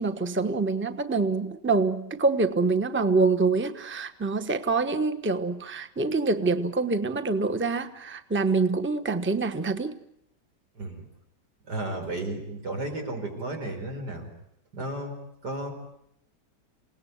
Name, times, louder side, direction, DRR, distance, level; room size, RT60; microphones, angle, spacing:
voice 1, 0.0-10.0, right 3 dB, 10° right, 0.9 m, -25 dB
voice 2, 11.7-14.3 14.7-15.7, right 2 dB, 75° right, 5.4 m, -33 dB
28.0 x 18.5 x 9.4 m
omnidirectional pair, 1.8 m